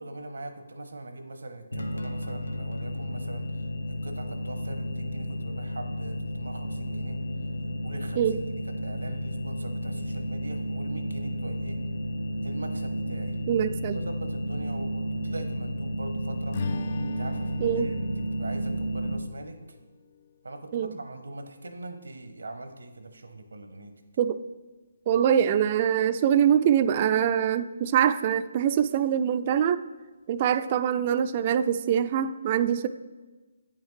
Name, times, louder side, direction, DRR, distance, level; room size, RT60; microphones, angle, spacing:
voice 1, 0.0-7.2 7.8-8.4 8.8-11.8 12.4-16.6 17.0-19.6 20.4-23.9, right 2 dB, 80° right, 7 dB, 0.9 m, -42 dB
sound 1, 1.7-19.2, equal, 90° left, 0.7 m, -32 dB
voice 2, 13.5-14.0 17.6-17.9 20.7-20.9 24.2-24.4 25.1-29.8 30.3-32.9, right 9 dB, 35° right, 12 dB, 0.3 m, -24 dB
Strum, 16.5-20.9, left 4 dB, 50° left, 0.3 m, -40 dB
8.6 x 5.7 x 3.2 m, 1.2 s
figure-of-eight pair, 150°, 0 cm